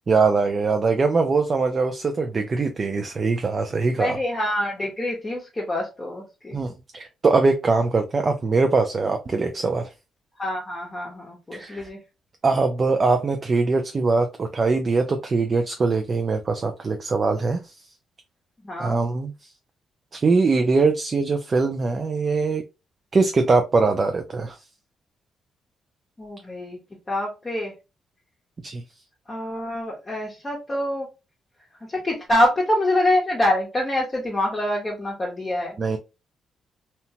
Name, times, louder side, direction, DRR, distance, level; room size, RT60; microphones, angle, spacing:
voice 1, 0.1-4.2 6.5-9.9 11.5-11.9 12.4-17.7 18.8-19.3 20.1-22.6 23.1-24.6 28.6-28.8 35.8-36.0, right 4 dB, 35° right, 0.3 m, -22 dB
voice 2, 4.0-6.6 10.4-12.0 18.6-19.0 26.2-26.8 27.1-27.7 29.3-31.1 31.9-35.8, left 1 dB, 20° left, 0.8 m, -25 dB
2.8 x 2.1 x 2.7 m
cardioid pair, 125°, 0 cm